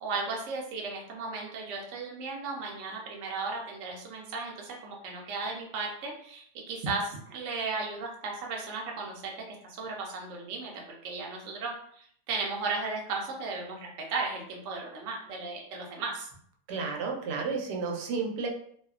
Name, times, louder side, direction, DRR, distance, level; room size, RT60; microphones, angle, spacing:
voice 1, 0.0-16.3, right 3 dB, 65° right, -1 dB, 0.7 m, -35 dB
voice 2, 16.7-18.5, right 4 dB, 80° right, 0 dB, 1.1 m, -32 dB
2.6 x 2.1 x 2.3 m, 0.63 s
omnidirectional pair, 1.7 m